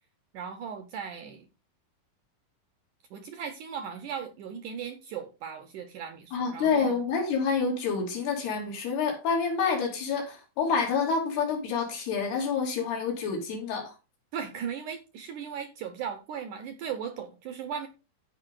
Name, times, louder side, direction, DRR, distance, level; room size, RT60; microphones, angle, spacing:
voice 1, 0.3-1.5 3.1-7.0 14.3-17.9, right 7 dB, 75° right, 1.9 m, -37 dB
voice 2, 6.3-13.9, left 5 dB, 80° left, 5.0 m, -28 dB
14.5 x 5.5 x 3.8 m
omnidirectional pair, 4.5 m